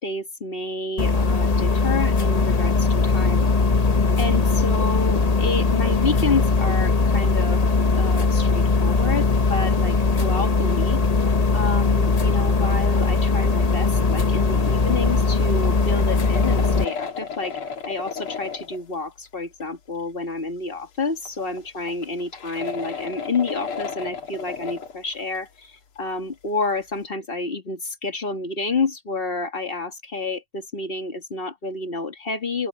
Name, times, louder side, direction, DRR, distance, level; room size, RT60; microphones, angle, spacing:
voice 1, 0.0-3.5 4.2-7.6 8.0-11.0 11.5-17.6 17.9-32.7, left 3 dB, 25° left, 1.9 m, -29 dB
sound 1, 1.0-16.8, left 4 dB, 55° left, 0.4 m, -20 dB
sound 2, 14.9-18.8 19.3-19.4 19.6-19.7 21.2-25.6 26.1-26.2, left 5 dB, 85° left, 2.7 m, -34 dB
open air
omnidirectional pair, 2.3 m